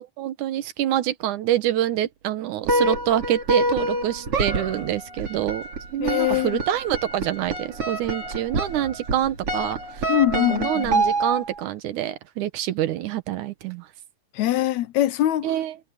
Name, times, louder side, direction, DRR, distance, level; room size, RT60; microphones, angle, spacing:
voice 1, 0.0-5.6 5.9-10.1 10.3-13.9 15.4-15.7, right 12 dB, 85° right, 2.6 m, -26 dB
sound 1, 2.6-11.6, right 2 dB, 50° right, 4.5 m, -27 dB
voice 2, 6.0-6.6 10.1-11.0 14.3-15.5, left 13 dB, 75° left, 2.0 m, -23 dB
omnidirectional pair, 3.5 m